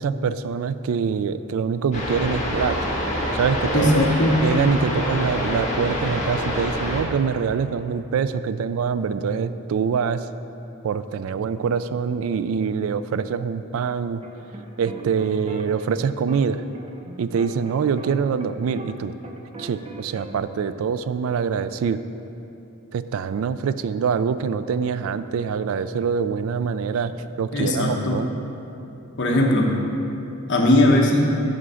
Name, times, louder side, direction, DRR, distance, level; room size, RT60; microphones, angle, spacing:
voice 1, 0.0-2.8 3.3-10.3 10.8-14.2 14.8-16.6 17.2-19.1 19.6-22.0 22.9-27.1 27.4-28.3, right 6 dB, 70° right, 13 dB, 0.3 m, -24 dB
sound 1, 1.9-7.0, left 1 dB, 35° left, 1.5 m, -26 dB
voice 2, 3.7-4.4 27.5-28.2 29.2-29.7 30.5-31.2, left 1 dB, 55° left, -1 dB, 1.1 m, -18 dB
sound 2, 14.2-19.0 19.2-20.4, right 1 dB, 25° right, 0.6 m, -39 dB
11.0 x 3.7 x 6.9 m, 3.0 s
head